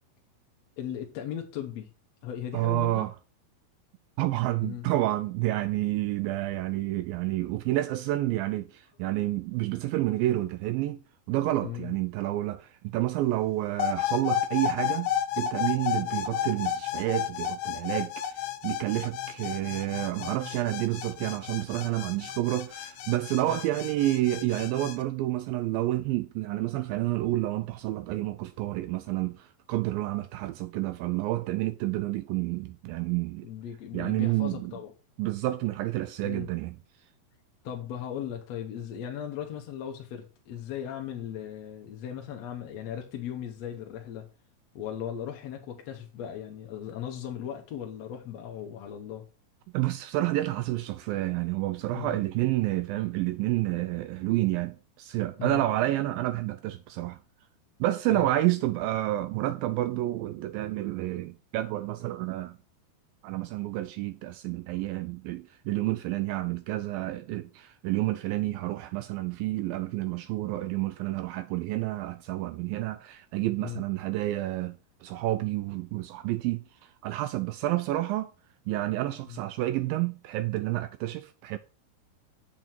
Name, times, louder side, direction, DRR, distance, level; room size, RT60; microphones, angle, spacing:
voice 1, 0.8-1.9 2.2-3.1 4.6-4.9 11.6-11.9 16.0-16.1 23.5-23.6 33.4-34.9 36.2-36.5 37.6-44.3 44.8-49.2 51.9-52.2 55.4-55.6 58.1-58.3 73.6-73.8 79.3-79.4, left 10 dB, 65° left, 1.7 m, -37 dB
voice 2, 2.5-3.1 4.2-11.0 11.3-33.5 33.9-34.7 35.2-36.8 49.7-57.2 57.8-62.6 63.2-78.3 78.7-81.6, right 16 dB, 80° right, 2.1 m, -29 dB
sound 1, 13.8-25.0, left 10 dB, 80° left, 2.7 m, -32 dB
7.9 x 7.5 x 4.5 m
omnidirectional pair, 4.5 m